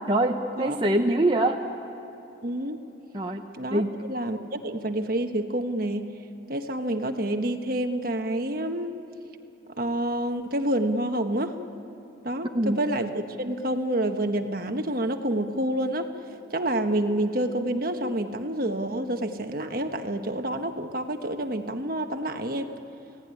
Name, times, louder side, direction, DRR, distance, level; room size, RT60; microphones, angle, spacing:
voice 1, 0.1-1.6 3.1-3.4 3.7-4.0 12.5-12.8, right 1 dB, 25° right, 2 dB, 0.8 m, -24 dB
voice 2, 2.4-2.8 3.5-3.8 4.1-6.1 6.5-8.9 9.8-11.6 12.2-16.1 16.5-22.7, right 1 dB, 50° right, 6 dB, 1.4 m, -28 dB
29.0 x 17.5 x 9.8 m, 2.9 s
head